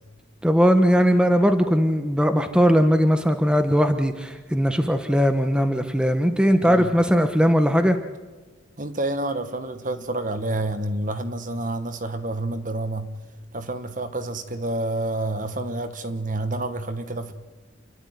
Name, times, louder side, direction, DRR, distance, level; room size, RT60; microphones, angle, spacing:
voice 1, 0.4-8.0, equal, 5° right, 7 dB, 1.1 m, -19 dB
voice 2, 6.6-6.9 8.8-13.1 13.5-17.3, right 2 dB, 40° right, 10 dB, 1.4 m, -28 dB
28.5 x 12.0 x 9.4 m, 1.3 s
head